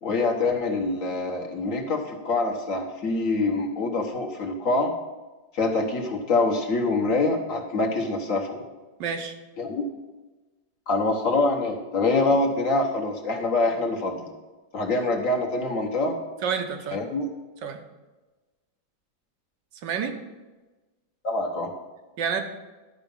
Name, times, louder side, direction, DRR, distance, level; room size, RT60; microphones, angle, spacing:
voice 1, 0.0-4.9 5.5-8.6 9.6-9.8 10.9-14.3 14.7-16.2 16.9-17.3 21.2-21.7, left 3 dB, 50° left, 1 dB, 1.4 m, -25 dB
voice 2, 9.0-9.4 16.4-17.0 17.6-17.8 19.8-20.1 22.2-22.4, right 6 dB, 80° right, 6 dB, 1.5 m, -28 dB
11.0 x 5.1 x 5.4 m, 1.2 s
omnidirectional pair, 2.0 m